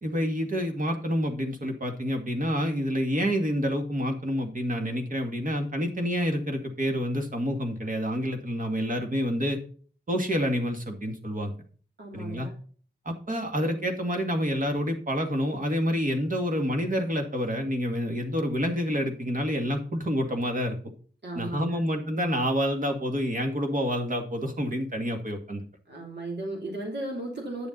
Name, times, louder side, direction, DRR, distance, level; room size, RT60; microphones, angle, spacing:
voice 1, 0.0-9.6 10.1-11.5 12.1-12.5 13.1-20.8 21.4-25.6, equal, 50° right, 4 dB, 2.2 m, -28 dB
voice 2, 12.0-12.5 21.2-21.8 25.9-27.7, right 2 dB, 70° right, 0 dB, 3.1 m, -35 dB
10.5 x 7.0 x 3.9 m, 0.42 s
wide cardioid pair, 105°, 18 cm